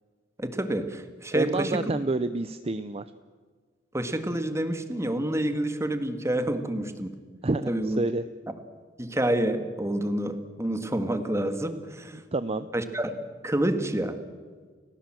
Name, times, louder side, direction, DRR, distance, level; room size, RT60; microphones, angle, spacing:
voice 1, 0.4-2.0 3.9-7.1 7.7-8.0 9.0-12.2 12.7-14.2, right 1 dB, 15° right, 9 dB, 1.8 m, -28 dB
voice 2, 1.3-3.1 7.4-8.2 12.1-12.7, right 2 dB, 35° right, 12 dB, 0.7 m, -28 dB
30.0 x 16.5 x 7.6 m, 1.5 s
head